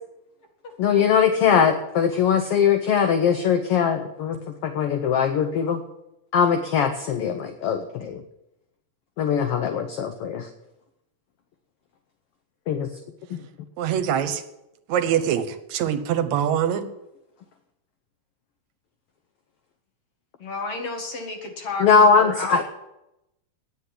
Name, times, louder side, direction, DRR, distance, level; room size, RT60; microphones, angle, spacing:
voice 1, 0.8-5.8 6.3-8.2 9.2-10.5 12.7-12.9 21.8-22.6, left 6 dB, 70° left, 7 dB, 1.4 m, -21 dB
voice 2, 13.8-14.4 14.9-15.4 15.7-16.8, right 9 dB, 70° right, 9 dB, 2.0 m, -23 dB
voice 3, 20.4-22.6, left 3 dB, 55° left, 3 dB, 2.6 m, -32 dB
9.7 x 8.4 x 9.8 m, 0.87 s
omnidirectional pair, 3.5 m